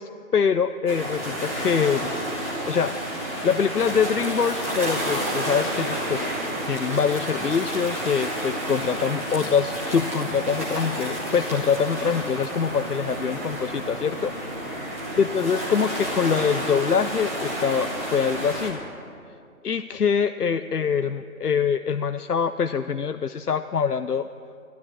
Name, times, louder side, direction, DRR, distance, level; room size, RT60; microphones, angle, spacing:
voice 1, 0.0-2.1 2.7-2.9 3.4-6.3 6.7-14.3 15.2-18.8 19.6-24.3, left 6 dB, 90° left, 10 dB, 0.7 m, -24 dB
sound 1, 0.9-18.7, right 1 dB, 10° right, 1.0 m, -30 dB
13.0 x 12.0 x 8.6 m, 2.4 s
figure-of-eight pair, 155°, 45 cm